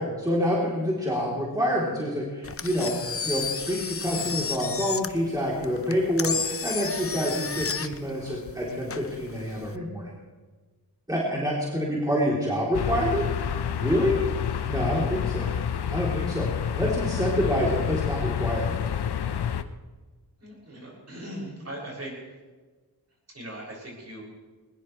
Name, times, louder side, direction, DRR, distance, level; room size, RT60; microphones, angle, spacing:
voice 1, 0.0-10.1 11.1-13.3 13.8-14.2 14.7-15.5 15.9-16.5 16.8-18.8, equal, 10° right, -5 dB, 3.4 m, -27 dB
Engine, 2.4-9.8, left 5 dB, 35° left, 0.7 m, -33 dB
sound 1, 12.7-19.6, left 8 dB, 80° left, 0.8 m, -28 dB
voice 2, 20.4-22.1 23.3-24.2, right 1 dB, 40° right, -3 dB, 6.7 m, -39 dB
20.5 x 20.0 x 3.3 m, 1.3 s
wide cardioid pair, 105°, 39 cm